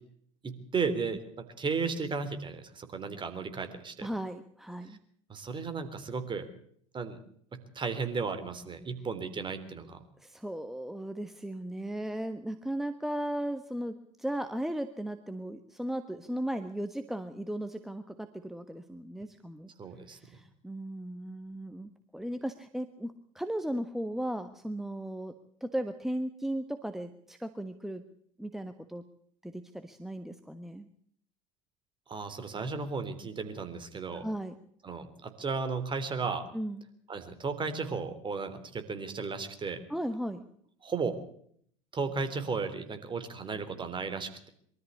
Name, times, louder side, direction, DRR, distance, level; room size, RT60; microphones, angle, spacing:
voice 1, 0.4-4.1 5.3-6.5 6.9-7.2 7.5-10.0 19.8-20.2 32.1-34.3 34.8-36.4 37.1-39.8 40.8-41.2 41.9-44.5, right 4 dB, 30° right, 9 dB, 3.5 m, -34 dB
voice 2, 4.0-5.0 10.2-19.7 20.1-25.3 25.6-28.0 28.4-29.0 29.4-30.9 34.1-34.5 36.5-36.9 39.9-40.5, right 1 dB, ahead, 9 dB, 1.4 m, -36 dB
23.5 x 13.5 x 8.4 m, 0.63 s
hypercardioid pair, 75°, 17 cm